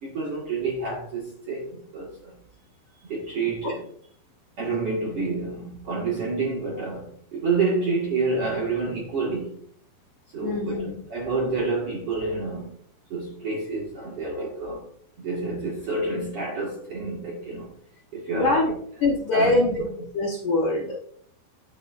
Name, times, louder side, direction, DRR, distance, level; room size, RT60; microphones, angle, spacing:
voice 1, 0.0-2.3 3.0-3.8 4.6-9.5 10.3-12.7 13.1-14.8 15.2-17.7 18.1-18.6 19.3-19.7, right 3 dB, 50° right, 1.9 m, -28 dB
voice 2, 10.4-10.9 18.4-18.7 19.0-19.9 20.1-21.0, left 2 dB, 70° left, 2.0 m, -23 dB
10.5 x 8.2 x 2.5 m
omnidirectional pair, 5.0 m